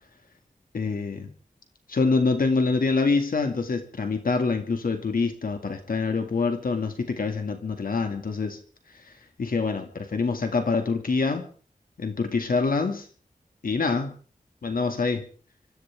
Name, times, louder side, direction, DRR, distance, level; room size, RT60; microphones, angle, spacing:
voice 1, 0.7-1.3 1.9-8.6 9.4-11.5 12.0-13.1 13.6-14.1 14.6-15.2, left 4 dB, 80° left, 6 dB, 2.2 m, -25 dB
26.0 x 15.0 x 3.6 m, 0.42 s
wide cardioid pair, 100°, 15 cm